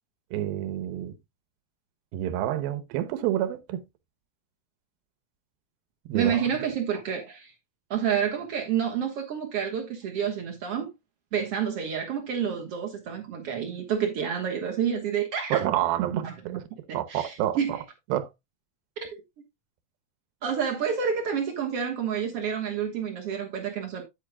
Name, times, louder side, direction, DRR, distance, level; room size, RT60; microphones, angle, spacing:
voice 1, 0.3-1.2 2.1-3.8 6.1-6.6 15.5-16.2 16.9-17.8 18.1-18.3, right 12 dB, 80° right, 2.7 m, -28 dB
voice 2, 6.1-7.5 7.9-10.9 11.3-15.6 16.0-16.6 16.9-17.8 19.0-19.2 20.4-24.0, right 7 dB, 60° right, 1.7 m, -29 dB
10.0 x 8.4 x 2.2 m
omnidirectional pair, 4.2 m